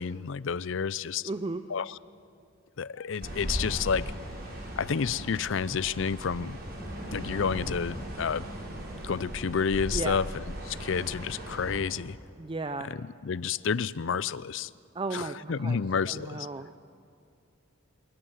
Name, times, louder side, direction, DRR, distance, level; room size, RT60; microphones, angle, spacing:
voice 1, 0.0-1.3 1.7-2.0 2.8-4.1 4.8-6.6 7.1-8.5 9.0-12.2 12.8-14.7 15.1-16.5, left 6 dB, 60° left, 20 dB, 0.5 m, -30 dB
voice 2, 1.2-1.6 9.9-10.2 12.4-12.9 14.9-15.8 16.1-16.7, right 3 dB, 25° right, 10 dB, 0.5 m, -34 dB
sound 1, 3.2-11.8, equal, 45° right, 4.9 m, -37 dB
29.0 x 18.5 x 7.9 m, 2.6 s
head